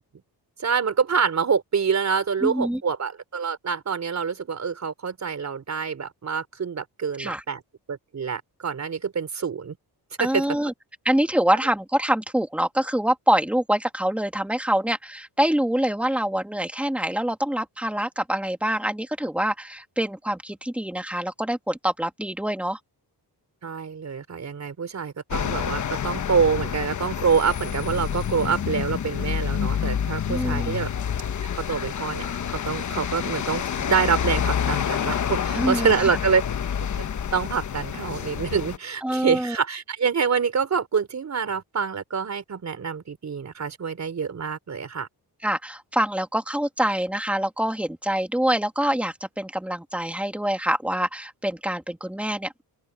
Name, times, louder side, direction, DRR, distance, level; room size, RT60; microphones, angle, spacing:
voice 1, 0.6-7.6 7.9-9.8 10.2-10.4 23.6-30.9 31.7-32.3 32.6-36.4 37.3-45.1, right 6 dB, 40° right, 4.3 m, -26 dB
voice 2, 2.4-2.8 7.2-7.4 10.2-10.7 11.0-22.8 30.3-30.8 35.5-35.9 39.0-39.6 45.4-52.6, right 1 dB, 5° right, 2.4 m, -25 dB
Paris Rue Calme, 25.3-38.8, left 8 dB, 45° left, 1.1 m, -28 dB
open air
wide cardioid pair, 135°, 40 cm